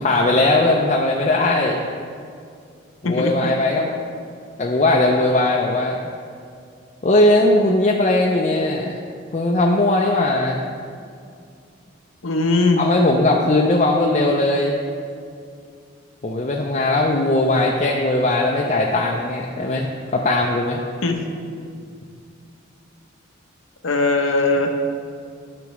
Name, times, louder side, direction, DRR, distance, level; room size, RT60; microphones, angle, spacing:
voice 1, 0.0-1.8 3.0-3.9 4.6-6.0 7.0-8.9 9.3-10.6 12.8-14.8 16.2-20.8, left 2 dB, 35° left, -1 dB, 0.5 m, -19 dB
voice 2, 3.0-3.5 12.2-12.8 21.0-21.2 23.8-24.8, left 3 dB, 80° left, 3 dB, 0.8 m, -20 dB
12.0 x 6.0 x 3.1 m, 2.3 s
head